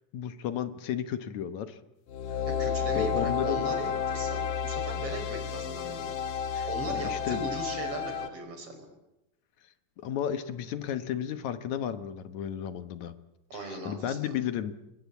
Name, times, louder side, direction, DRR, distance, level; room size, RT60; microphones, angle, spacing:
voice 1, 0.1-1.8 2.9-3.7 6.5-7.4 10.0-13.1 13.5-14.7, left 9 dB, 70° left, 11 dB, 2.4 m, -33 dB
sound 1, 2.1-8.3, left 7 dB, 90° left, 3.1 m, -31 dB
voice 2, 2.5-6.1 6.6-8.9 13.5-14.3, right 2 dB, 45° right, 5 dB, 5.9 m, -38 dB
28.0 x 21.5 x 8.4 m, 0.93 s
omnidirectional pair, 3.6 m